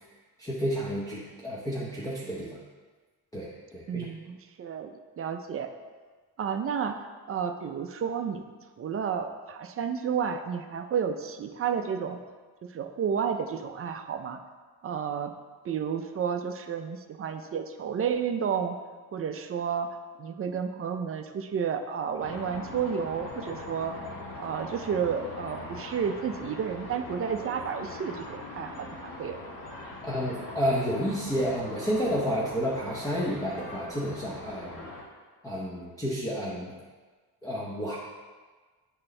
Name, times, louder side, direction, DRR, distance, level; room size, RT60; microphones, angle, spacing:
voice 1, 0.4-2.6 3.3-4.1 30.0-34.9 35.4-36.7 37.4-38.0, equal, 10° left, -6 dB, 0.7 m, -30 dB
voice 2, 3.9-5.7 6.4-7.0 7.3-8.4 8.8-12.2 12.7-14.4 14.8-15.3 15.6-18.8 19.1-24.0 24.4-29.4, right 7 dB, 35° right, 7 dB, 0.4 m, -31 dB
sound 1, 22.2-35.0, left 2 dB, 60° left, 1.5 m, -42 dB
9.8 x 4.3 x 3.2 m, 1.4 s
cardioid pair, 155°, 39 cm